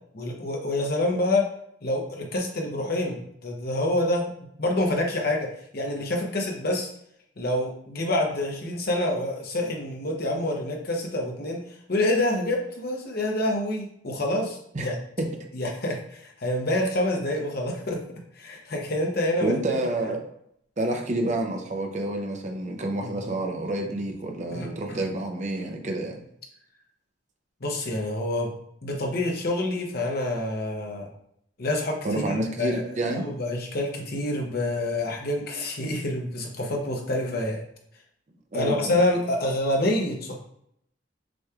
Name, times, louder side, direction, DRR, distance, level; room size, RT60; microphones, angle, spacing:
voice 1, 0.1-1.5 1.8-4.3 4.6-6.9 7.4-11.6 11.9-15.0 15.5-18.0 18.4-19.5 20.1-20.2 24.5-25.0 27.6-28.5 28.8-31.1 31.6-37.6 38.5-40.3, left 1 dB, 55° left, 0 dB, 0.9 m, -27 dB
voice 2, 19.4-20.2 20.8-26.2 32.0-33.2 38.5-39.0, right 2 dB, 40° right, 3 dB, 0.6 m, -28 dB
6.1 x 3.1 x 2.4 m, 0.72 s
head